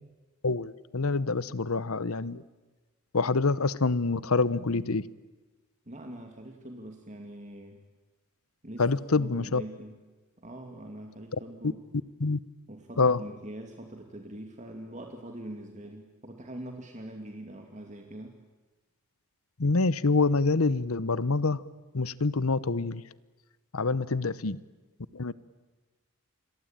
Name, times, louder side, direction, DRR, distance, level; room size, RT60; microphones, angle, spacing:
voice 1, 0.4-2.4 3.1-5.0 8.8-9.6 12.2-12.4 13.0-13.2 19.6-21.6 21.9-23.0 23.7-24.6 25.1-25.3, left 3 dB, 80° left, 18 dB, 1.0 m, -26 dB
voice 2, 5.9-7.8 8.6-10.0 10.4-11.8 12.7-18.4, right 1 dB, 35° right, 4 dB, 2.4 m, -43 dB
28.5 x 23.0 x 9.0 m, 1.2 s
head